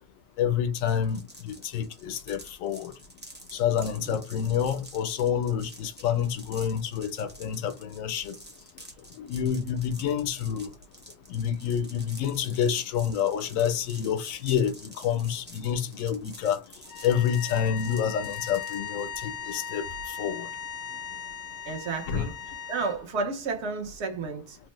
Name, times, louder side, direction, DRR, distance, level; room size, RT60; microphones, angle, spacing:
voice 1, 0.4-2.9 3.5-8.3 9.2-10.7 11.3-16.6 17.0-19.8 20.2-20.5 22.1-22.3, left 8 dB, 85° left, 1.0 m, -28 dB
sound 1, 0.8-19.0, right 1 dB, 15° right, 0.3 m, -49 dB
sound 2, 16.9-23.0, left 7 dB, 65° left, 0.7 m, -38 dB
voice 2, 21.7-22.3 22.7-24.6, right 4 dB, 65° right, 0.9 m, -32 dB
3.2 x 2.0 x 3.0 m
omnidirectional pair, 1.3 m